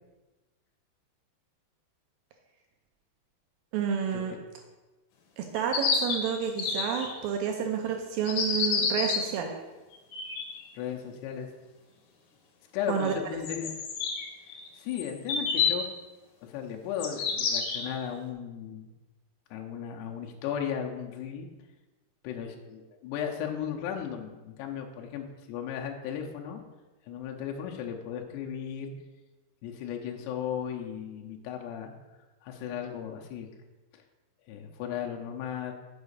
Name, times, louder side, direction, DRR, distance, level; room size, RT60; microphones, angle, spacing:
voice 1, 3.7-4.3 5.4-9.6 12.9-13.1, right 7 dB, 80° right, 3 dB, 2.1 m, -30 dB
sound 1, 5.6-7.3 8.3-9.3 10.0-10.6 13.0-13.1 13.4-15.9 17.0-18.1, left 5 dB, 75° left, 1.7 m, -29 dB
voice 2, 10.7-11.5 12.7-13.7 14.7-15.9 16.4-18.9 19.5-21.5 22.2-26.6 27.1-28.9 29.6-31.9 32.4-33.5 33.9-34.0 34.5-35.7, left 8 dB, 90° left, 1 dB, 2.9 m, -36 dB
7.3 x 4.8 x 6.7 m, 1.2 s
omnidirectional pair, 4.8 m